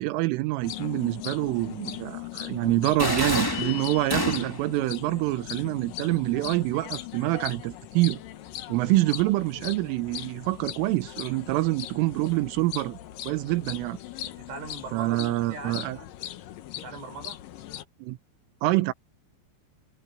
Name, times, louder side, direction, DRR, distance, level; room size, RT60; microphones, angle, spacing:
voice 1, 0.0-8.2 8.7-13.0 13.3-14.0 14.9-16.0 18.0-18.2 18.6-18.9, right 19 dB, 90° right, 3.5 m, -26 dB
sound 1, 0.6-17.8, left 13 dB, 80° left, 2.0 m, -39 dB
sound 2, 3.0-4.7, left 1 dB, 10° left, 1.5 m, -28 dB
sound 3, 3.5-4.4, left 17 dB, 60° left, 3.1 m, -37 dB
voice 2, 14.2-15.9 16.8-17.4, right 4 dB, 75° right, 9.3 m, -40 dB
omnidirectional pair, 5.7 m